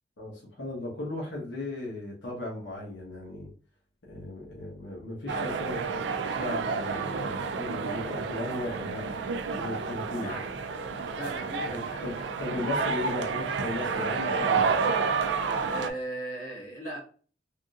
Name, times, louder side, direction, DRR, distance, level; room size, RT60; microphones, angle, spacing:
voice 1, 0.2-3.5 4.1-5.8 6.2-9.1 9.5-10.3 11.6-14.8, left 2 dB, 85° left, -4 dB, 1.0 m, -36 dB
sound 1, 5.3-15.9, right 5 dB, 85° right, 0.4 m, -30 dB
voice 2, 10.2-10.5 11.2-12.3 13.0-13.2 15.7-17.0, right 1 dB, 50° left, -4 dB, 1.5 m, -38 dB
3.5 x 2.6 x 2.3 m, 0.39 s
head